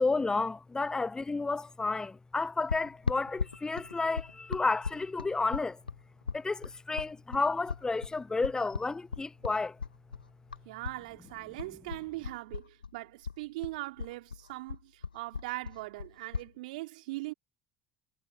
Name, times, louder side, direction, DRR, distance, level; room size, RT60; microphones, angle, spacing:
voice 1, 0.0-5.8 6.3-9.8, left 3 dB, 15° left, 0.5 m, -31 dB
sound 1, 2.7-11.0 11.3-12.9 13.2-16.5, left 5 dB, 85° left, 1.1 m, -37 dB
voice 2, 10.6-17.3, right 20 dB, 70° right, 3.3 m, -40 dB
figure-of-eight pair, 60°, 5 cm